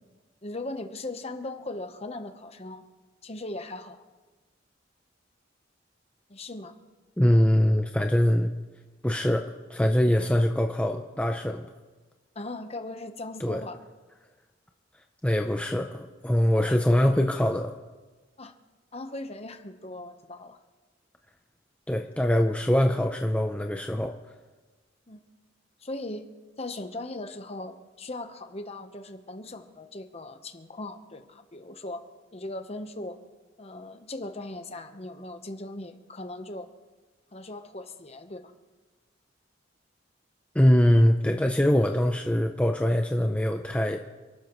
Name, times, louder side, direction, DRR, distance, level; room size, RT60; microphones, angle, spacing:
voice 1, 0.4-2.8 3.2-4.0 6.3-6.7 12.3-13.8 16.5-16.8 18.4-18.5 18.9-20.6 25.1-25.2 25.8-26.3 26.6-32.0 32.3-33.2 33.6-36.7 37.3-38.5, left 2 dB, 35° left, 7 dB, 1.0 m, -38 dB
voice 2, 7.2-8.5 9.0-11.7 13.4-13.6 15.2-17.7 21.9-24.1 40.5-44.0, left 1 dB, 5° left, 4 dB, 0.5 m, -23 dB
27.5 x 12.5 x 3.1 m, 1.3 s
head